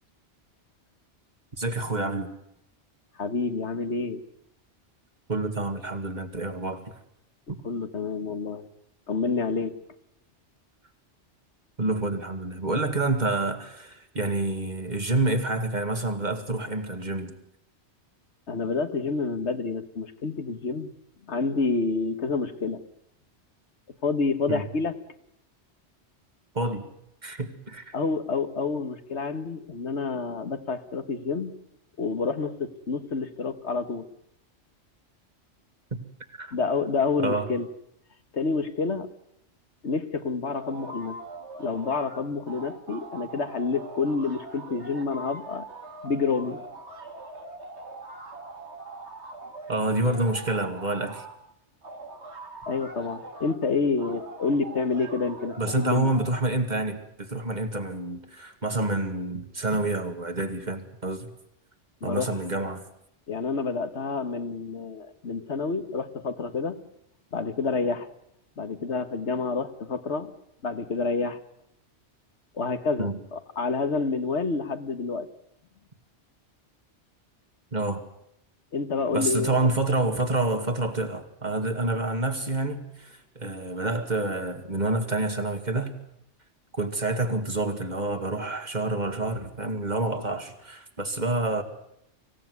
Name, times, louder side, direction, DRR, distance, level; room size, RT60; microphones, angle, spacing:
voice 1, 1.6-2.3 5.3-6.9 7.5-7.6 11.8-17.4 24.5-24.6 26.5-26.9 27.2-27.9 36.3-36.5 37.2-37.5 49.7-51.2 55.6-61.3 62.0-62.8 73.0-73.2 77.7-78.0 79.1-86.0 86.7-91.6, right 2 dB, 40° right, 7 dB, 2.3 m, -28 dB
voice 2, 3.2-4.2 7.6-8.7 9.1-9.8 18.5-20.9 21.3-22.8 24.0-24.9 27.9-31.5 32.0-34.1 36.5-37.7 38.3-39.1 39.8-41.2 41.6-45.7 46.0-46.6 52.7-56.1 62.0-62.3 63.3-66.8 67.3-68.1 68.6-70.3 70.6-71.4 72.5-75.3 78.7-79.7, left 4 dB, 75° left, 10 dB, 1.7 m, -28 dB
sound 1, 40.5-42.2 42.5-51.4 51.8-53.6 54.0-56.3, right 2 dB, 75° right, 2.6 m, -42 dB
25.5 x 16.5 x 9.6 m, 0.79 s
omnidirectional pair, 1.2 m